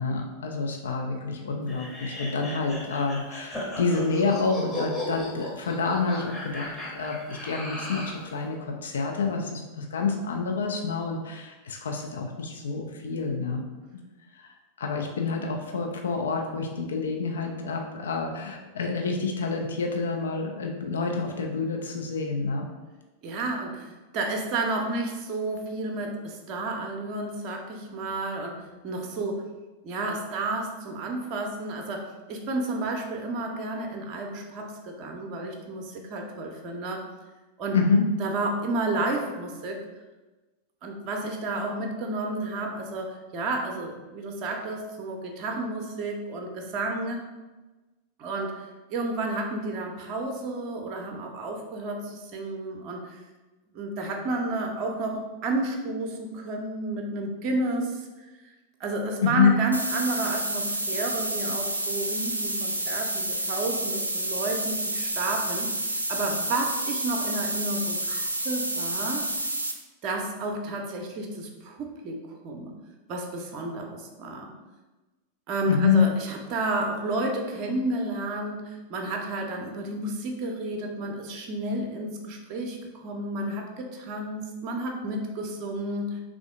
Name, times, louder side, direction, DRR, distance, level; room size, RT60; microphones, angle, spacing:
voice 1, 0.0-13.6 14.3-14.5 14.8-22.7 37.7-38.1 59.2-59.6 75.7-76.1, left 4 dB, 65° left, 2 dB, 0.5 m, -27 dB
sound 1, 1.7-8.2, left 1 dB, 10° left, 0.8 m, -36 dB
voice 2, 23.2-29.5 29.8-37.0 37.6-37.8 38.2-39.8 40.8-47.2 48.2-53.2 53.7-58.5 58.8-65.7 66.1-69.3 70.0-72.7 73.1-74.5 75.5-86.2, right 2 dB, 35° right, 2 dB, 0.5 m, -31 dB
sound 2, 59.7-69.7, right 1 dB, 85° right, 0.4 m, -29 dB
3.4 x 2.5 x 3.6 m, 1.2 s
figure-of-eight pair, 90°, 0 cm